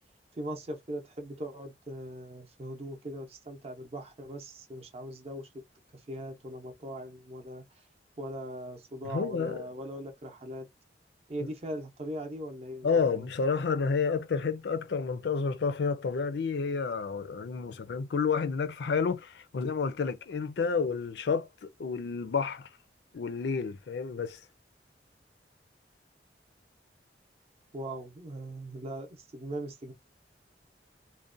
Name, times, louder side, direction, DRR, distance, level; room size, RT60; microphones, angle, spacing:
voice 1, 0.3-5.5 5.9-7.9 8.2-10.7 11.3-13.3 27.7-29.9, right 1 dB, 35° right, 0.6 m, -40 dB
voice 2, 9.1-9.6 11.4-11.5 12.8-22.7 23.1-24.4, left 5 dB, 70° left, 0.4 m, -30 dB
2.5 x 2.1 x 2.5 m
head